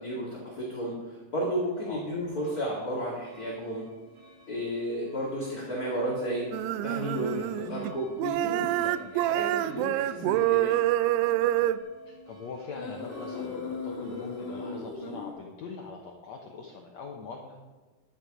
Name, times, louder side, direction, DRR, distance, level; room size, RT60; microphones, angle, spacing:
voice 1, 0.0-3.8 4.5-10.8, equal, 30° left, -5 dB, 2.2 m, -33 dB
sound 1, 1.7-14.7, equal, 70° right, 0.7 m, -52 dB
sound 2, 5.8-6.0 6.8-6.9 8.3-8.5 9.5-9.8 10.5-10.6 12.7-15.3, left 4 dB, 50° left, 3.5 m, -37 dB
sound 3, 6.5-7.9 8.2-11.8, right 14 dB, 90° right, 2.6 m, -27 dB
voice 2, 8.8-9.1 12.1-17.6, left 4 dB, 80° left, 1 dB, 1.5 m, -43 dB
11.5 x 11.0 x 5.0 m, 1.3 s
omnidirectional pair, 4.7 m